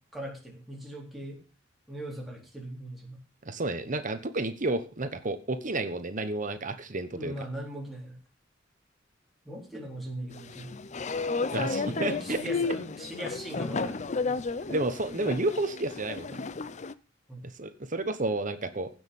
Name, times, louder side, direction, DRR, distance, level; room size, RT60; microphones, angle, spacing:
voice 1, 0.1-1.4 1.9-3.2 7.2-8.2 9.4-10.7 12.0-14.2 17.3-17.5, equal, ahead, -2 dB, 4.1 m, -40 dB
voice 2, 3.4-7.3 11.5-12.4 14.7-16.4 17.6-18.9, right 2 dB, 45° right, 9 dB, 1.1 m, -31 dB
sound 1, 10.4-16.9, left 4 dB, 40° left, 0.6 m, -33 dB
16.0 x 6.4 x 5.4 m, 0.33 s
head